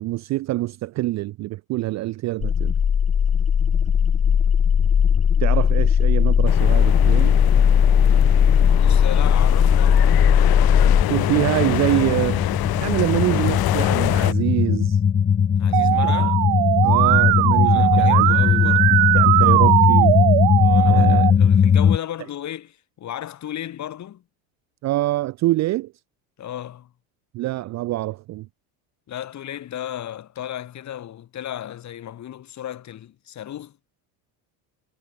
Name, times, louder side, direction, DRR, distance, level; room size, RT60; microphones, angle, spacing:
voice 1, 0.0-2.7 5.4-7.3 11.1-12.5 12.8-15.0 16.2-16.3 16.8-18.7 19.1-20.1 20.9-21.4 24.8-25.9 27.3-28.5, right 17 dB, 40° right, 0.4 m, -25 dB
sound 1, 2.4-22.0, left 7 dB, 20° left, 0.5 m, -18 dB
sound 2, 6.5-14.3, left 17 dB, 55° left, 1.4 m, -26 dB
voice 2, 8.8-10.2 15.6-16.4 17.6-18.9 20.6-24.2 26.4-26.9 29.1-33.8, left 11 dB, 40° left, 1.6 m, -34 dB
Musical instrument, 15.7-21.3, right 34 dB, 70° right, 1.0 m, -19 dB
supercardioid pair, 105°, 44 cm